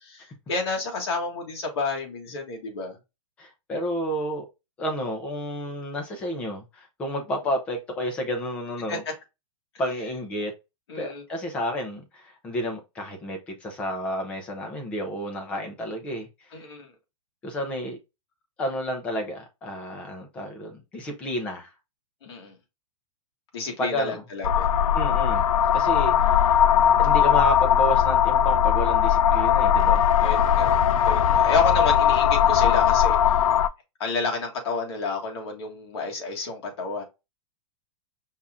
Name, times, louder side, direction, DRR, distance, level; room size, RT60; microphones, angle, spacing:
voice 1, 0.0-3.0 8.9-9.0 10.9-11.2 16.5-16.9 22.2-22.5 23.5-24.7 25.9-26.2 30.2-33.3 34.0-37.0, left 3 dB, 50° left, 1.6 m, -30 dB
voice 2, 3.4-4.5 4.8-9.0 9.8-10.5 10.9-16.3 17.4-18.0 18.6-21.7 23.8-24.2 24.9-25.4 25.7-26.6 27.0-30.1, equal, 5° left, 0.4 m, -30 dB
sound 1, 24.4-33.7, left 9 dB, 85° left, 0.4 m, -19 dB
5.5 x 2.4 x 3.5 m
supercardioid pair, 180°, 17 cm